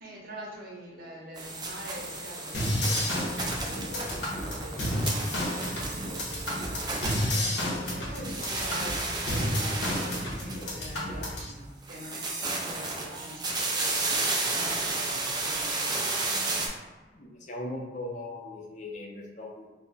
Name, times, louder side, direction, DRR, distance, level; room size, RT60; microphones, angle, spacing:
voice 1, 0.0-16.5, equal, 50° right, -3 dB, 0.7 m, -45 dB
sound 1, 1.4-7.9 8.2-11.0 11.8-16.7, right 3 dB, 20° right, 0.3 m, -32 dB
sound 2, 2.5-11.5, left 1 dB, 70° left, 0.7 m, -31 dB
voice 2, 17.1-19.7, left 1 dB, 40° left, -1 dB, 0.5 m, -39 dB
2.2 x 2.1 x 3.8 m, 1.3 s
head